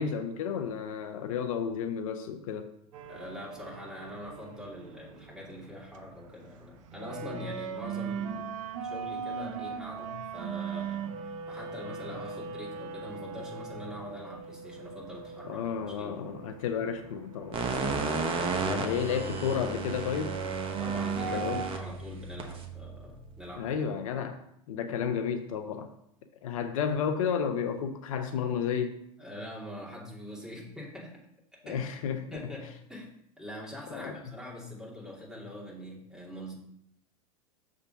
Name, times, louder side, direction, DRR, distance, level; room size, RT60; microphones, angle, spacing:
voice 1, 0.0-2.7 15.5-18.0 18.7-20.4 21.3-21.6 23.6-24.4 24.7-25.9 26.4-29.0 31.6-32.2 33.9-34.2, left 7 dB, 70° left, 8 dB, 0.6 m, -32 dB
sound 1, 2.9-21.8, right 6 dB, 65° right, 0.8 m, -40 dB
voice 2, 3.1-11.2 11.5-15.6 16.0-16.1 17.9-18.3 18.6-19.5 20.8-23.7 29.2-31.2 31.7-31.9 32.3-36.5, left 1 dB, 5° right, -5 dB, 2.7 m, -43 dB
sound 2, 17.5-23.6, right 4 dB, 30° right, 1.1 m, -34 dB
6.6 x 3.7 x 5.8 m, 0.75 s
hypercardioid pair, 90°, 18 cm